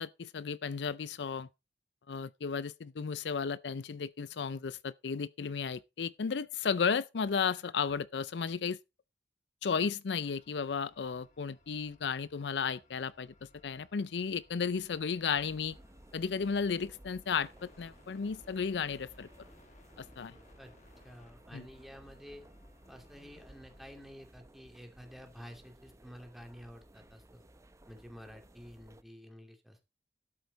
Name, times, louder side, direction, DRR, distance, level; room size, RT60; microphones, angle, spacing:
voice 1, 0.0-1.5 2.1-8.8 9.6-13.3 13.6-15.8 16.1-19.3 20.0-20.4 21.5-21.7, left 6 dB, 75° left, 0.5 m, -34 dB
sound 1, 10.2-23.9, left 2 dB, 45° left, 1.6 m, -63 dB
sound 2, 15.3-29.0, right 1 dB, 20° right, 0.7 m, -58 dB
voice 2, 21.0-22.4 22.9-27.4 27.9-29.8, equal, ahead, 2.5 m, -51 dB
12.5 x 8.1 x 4.0 m
head